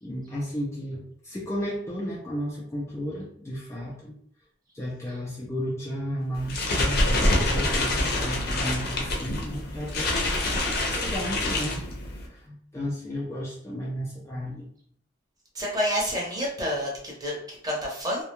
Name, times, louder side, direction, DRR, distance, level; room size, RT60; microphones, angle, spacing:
voice 1, 0.0-4.1 4.7-10.4 11.0-11.9 12.3-14.7, equal, 15° left, -4 dB, 0.4 m, -33 dB
sound 1, 6.3-12.3, left 1 dB, 55° left, 0.6 m, -26 dB
voice 2, 15.5-18.2, equal, 20° right, -3 dB, 0.7 m, -29 dB
2.2 x 2.1 x 2.9 m, 0.64 s
head